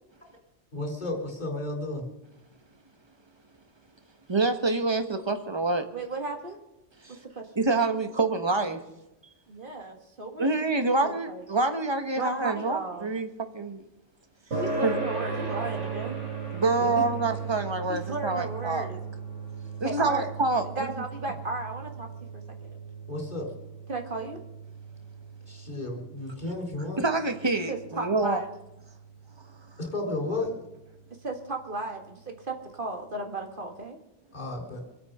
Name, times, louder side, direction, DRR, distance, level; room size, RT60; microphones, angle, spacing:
voice 1, 0.7-2.0 16.8-16.9 23.1-23.5 25.5-27.0 29.8-30.5 34.3-34.8, left 2 dB, 40° left, 4.4 m, -33 dB
voice 2, 4.3-5.9 7.0-7.2 7.6-8.8 9.2-9.3 10.4-13.3 13.5-13.8 14.8-14.9 16.5-18.9 19.8-20.7 27.0-28.4, right 3 dB, 25° right, 1.3 m, -26 dB
voice 3, 5.9-6.6 7.2-7.5 9.5-10.5 11.0-11.4 12.2-13.1 14.5-16.2 17.9-19.0 19.8-20.3 20.7-22.1 22.3-22.7 23.9-24.4 27.7-28.5 31.2-34.0, right 2 dB, 45° right, 2.1 m, -35 dB
sound 1, 14.5-29.4, right 4 dB, 80° right, 4.0 m, -37 dB
25.5 x 8.8 x 5.5 m
omnidirectional pair, 1.2 m